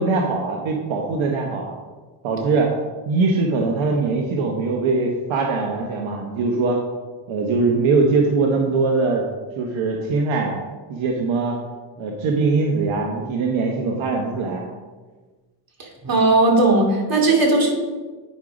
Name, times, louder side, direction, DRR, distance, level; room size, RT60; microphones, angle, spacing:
voice 1, 0.0-1.7 2.2-2.7 3.1-6.8 7.3-9.2 9.6-10.5 10.9-11.6 12.0-14.7, right 3 dB, 80° right, 1 dB, 1.2 m, -21 dB
voice 2, 15.8-17.7, right 2 dB, 50° right, 0 dB, 2.6 m, -17 dB
9.4 x 5.3 x 4.9 m, 1.3 s
cardioid pair, 70°, 46 cm